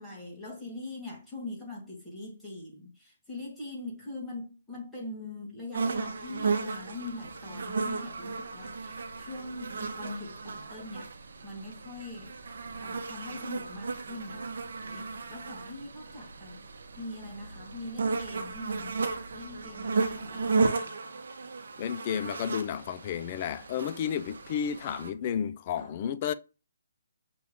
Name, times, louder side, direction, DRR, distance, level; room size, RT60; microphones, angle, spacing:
voice 1, 0.0-12.4 12.8-16.7 17.0-19.0 19.3-21.0 25.8-25.9, left 2 dB, 5° left, 1.8 m, -42 dB
sound 1, 5.7-25.1, right 4 dB, 70° right, 0.7 m, -34 dB
voice 2, 21.8-26.3, left 8 dB, 35° left, 0.4 m, -32 dB
5.8 x 2.5 x 3.6 m
hypercardioid pair, 155°, 0 cm